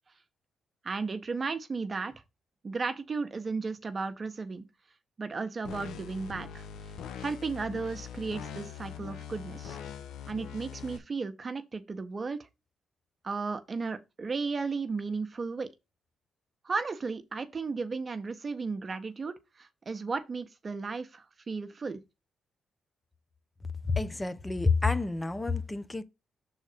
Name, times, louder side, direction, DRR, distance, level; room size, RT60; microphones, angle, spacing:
voice 1, 0.8-2.1 2.6-4.6 5.2-6.7 7.2-9.8 10.3-12.4 13.2-15.7 16.6-22.0, right 4 dB, 40° right, 1.2 m, -34 dB
sound 1, 5.6-11.0, left 8 dB, 85° left, 0.9 m, -42 dB
voice 2, 23.9-26.0, left 4 dB, 15° left, 0.9 m, -28 dB
6.3 x 3.9 x 5.1 m
supercardioid pair, 65°, 0 cm